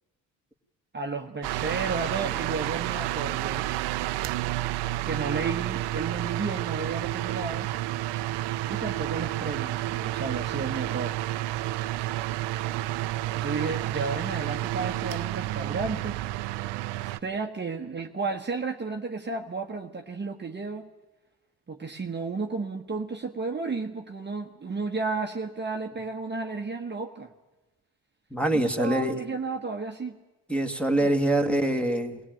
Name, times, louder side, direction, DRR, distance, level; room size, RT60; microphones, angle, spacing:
voice 1, 0.9-3.7 5.0-7.7 8.7-11.2 13.3-16.2 17.0-20.9 21.7-27.3 28.4-30.2 31.0-31.2, right 4 dB, 25° right, 4 dB, 1.2 m, -33 dB
sound 1, 1.4-17.2, right 15 dB, 85° right, 0.7 m, -30 dB
voice 2, 28.3-29.2 30.5-32.2, right 1 dB, 5° left, 6 dB, 1.9 m, -24 dB
21.5 x 16.5 x 9.1 m, 1.1 s
supercardioid pair, 75°, 40 cm